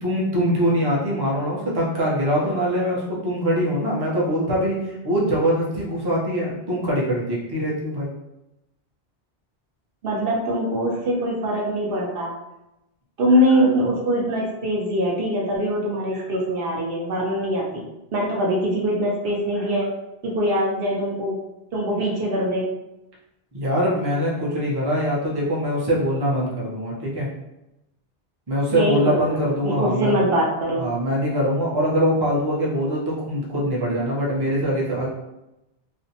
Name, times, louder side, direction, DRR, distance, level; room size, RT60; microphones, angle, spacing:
voice 1, 0.0-4.8 5.0-8.1 23.5-27.3 28.5-30.2 30.8-35.1, equal, 30° right, -5 dB, 0.5 m, -23 dB
voice 2, 10.0-12.3 13.2-19.9 20.2-21.4 21.7-22.7 28.7-30.8, equal, 65° right, -3 dB, 0.7 m, -23 dB
2.5 x 2.0 x 2.7 m, 0.93 s
omnidirectional pair, 1.1 m